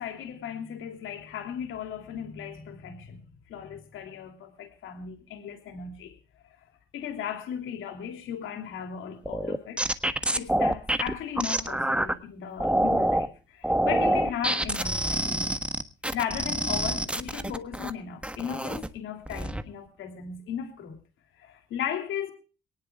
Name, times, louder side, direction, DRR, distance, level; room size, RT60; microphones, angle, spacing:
voice 1, 0.0-3.2 3.5-6.2 6.4-6.6 6.9-9.8 10.4-15.6 16.1-21.0 21.4-22.3, left 8 dB, 85° left, 3.0 m, -36 dB
sound 1, 9.3-12.1 12.6-13.3 13.6-17.9 18.2-18.9 19.3-19.6, right 1 dB, 5° right, 1.3 m, -26 dB
22.5 x 19.0 x 2.4 m
cardioid pair, 90°, 20 cm